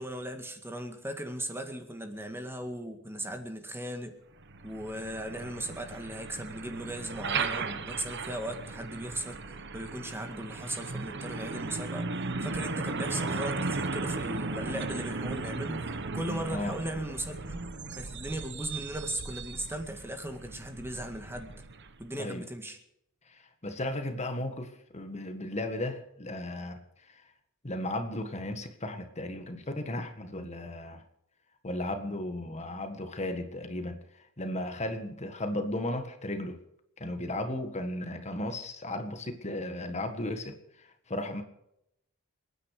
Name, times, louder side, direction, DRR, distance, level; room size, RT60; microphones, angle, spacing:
voice 1, 0.0-4.1 4.6-17.6 17.9-21.5 22.0-22.8, right 1 dB, 10° right, 6 dB, 1.9 m, -37 dB
Truck, 4.4-22.1, right 3 dB, 55° right, 1.3 m, -36 dB
voice 2, 23.3-27.2 27.6-31.0 31.6-34.0 34.4-36.6 37.0-41.4, left 1 dB, 35° left, 7 dB, 1.7 m, -35 dB
28.5 x 9.9 x 5.0 m, 0.79 s
head